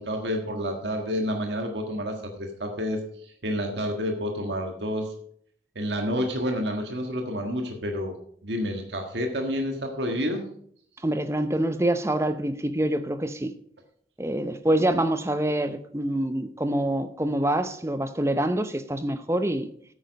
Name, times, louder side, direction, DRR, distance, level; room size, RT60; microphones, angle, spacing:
voice 1, 0.0-3.0 3.4-5.1 5.7-8.2 8.4-10.4, equal, 85° right, 1.6 m, -29 dB
voice 2, 11.0-13.5 14.2-19.7, right 1 dB, 15° right, 0.7 m, -26 dB
9.4 x 8.7 x 5.3 m
head